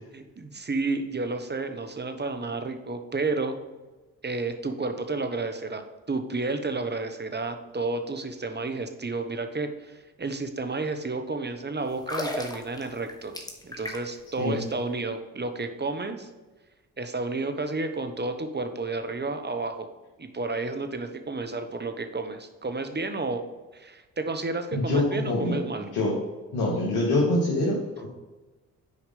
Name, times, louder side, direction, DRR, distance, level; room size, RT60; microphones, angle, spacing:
voice 1, 0.1-3.6 4.2-13.4 13.6-16.3 17.0-19.9 20.2-23.4 23.7-25.9, right 3 dB, 25° right, 7 dB, 1.1 m, -31 dB
sound 1, 11.9-14.3 14.5-14.7, left 1 dB, 10° left, 1.5 m, -35 dB
voice 2, 24.7-26.2 26.5-28.1, left 2 dB, 80° left, -4 dB, 1.7 m, -25 dB
6.7 x 4.9 x 5.2 m, 1.2 s
hypercardioid pair, 45°, 39 cm